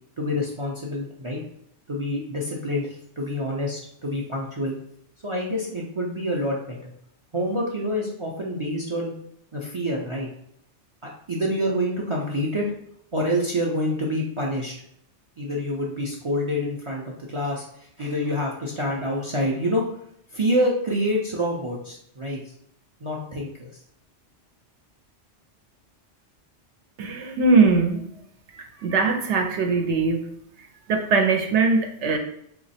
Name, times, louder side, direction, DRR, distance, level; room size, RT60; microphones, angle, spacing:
voice 1, 0.2-1.4 1.9-4.7 5.2-6.9 7.3-9.1 9.5-10.3 11.0-12.7 13.1-14.7 15.4-19.8 20.3-22.5 23.0-23.7, equal, 45° right, -2 dB, 0.4 m, -27 dB
voice 2, 27.0-28.0 28.8-30.2 30.9-32.2, right 4 dB, 75° right, 4 dB, 0.9 m, -20 dB
3.0 x 2.3 x 4.1 m, 0.70 s
omnidirectional pair, 1.2 m